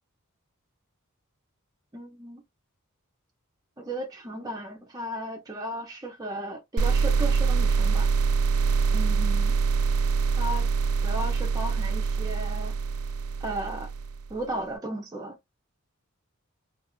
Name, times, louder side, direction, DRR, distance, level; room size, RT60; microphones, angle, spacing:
voice 1, 1.9-2.4 3.8-8.1 8.9-9.6 10.4-10.7 11.0-12.7 13.4-13.9 14.3-15.4, right 1 dB, 15° right, 0.4 m, -35 dB
sound 1, 6.8-14.3, right 5 dB, 85° right, 0.4 m, -25 dB
2.3 x 2.3 x 2.9 m
head